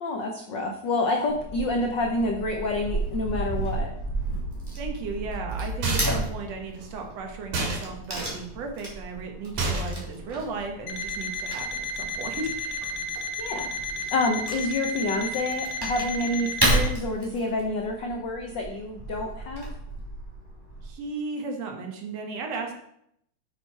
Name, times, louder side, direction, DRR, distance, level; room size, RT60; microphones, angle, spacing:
voice 1, 0.0-3.9 13.4-13.7 14.1-19.7, left 2 dB, 85° left, 2 dB, 1.0 m, -28 dB
Wood / Tearing, 1.3-20.9, right 2 dB, 10° right, 2.5 m, -33 dB
voice 2, 4.8-12.9 20.8-22.7, right 4 dB, 65° right, 3 dB, 2.3 m, -35 dB
sound 1, 5.8-6.3 7.5-7.9 9.6-10.1, right 2 dB, 85° right, 3.5 m, -27 dB
Alarm, 10.9-16.9, left 1 dB, 60° left, 1.4 m, -33 dB
8.7 x 6.7 x 4.6 m, 0.73 s
omnidirectional pair, 3.4 m